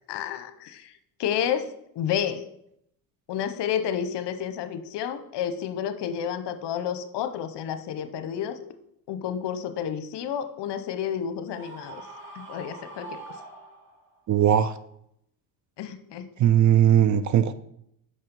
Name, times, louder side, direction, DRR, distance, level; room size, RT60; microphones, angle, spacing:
voice 1, 0.1-0.9 1.2-2.4 3.3-8.6 9.1-12.0 12.4-13.2 15.8-16.3, left 9 dB, 60° left, 10 dB, 0.8 m, -30 dB
Screaming, 11.5-14.2, right 3 dB, 25° right, 2.4 m, -43 dB
voice 2, 14.3-14.7 16.4-17.5, right 10 dB, 40° right, 13 dB, 0.5 m, -19 dB
5.7 x 5.5 x 5.3 m, 0.75 s
cardioid pair, 95°, 46 cm